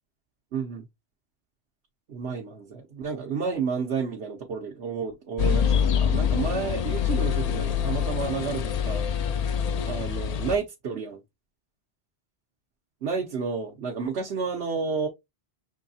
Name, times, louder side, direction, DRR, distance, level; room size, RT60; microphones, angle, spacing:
voice 1, 0.5-0.8 2.1-9.1 9.9-11.2 13.0-15.1, right 5 dB, 85° right, 1.1 m, -31 dB
sound 1, 5.4-10.6, left 8 dB, 55° left, 0.4 m, -25 dB
5.6 x 3.1 x 2.7 m
omnidirectional pair, 1.1 m